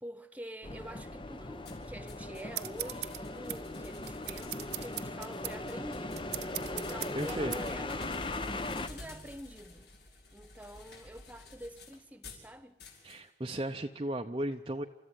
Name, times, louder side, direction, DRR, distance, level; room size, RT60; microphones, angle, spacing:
voice 1, 0.0-9.9 10.3-12.8, equal, 10° right, 1.3 m, -47 dB
sound 1, 0.6-8.9, left 2 dB, 30° left, 0.9 m, -39 dB
sound 2, 1.6-12.5 12.8-13.2, left 3 dB, 70° left, 5.1 m, -52 dB
sound 3, 2.5-7.6, right 15 dB, 75° right, 0.9 m, -41 dB
voice 2, 7.1-7.5 13.0-14.8, right 1 dB, 30° right, 0.7 m, -35 dB
29.0 x 14.0 x 9.9 m
head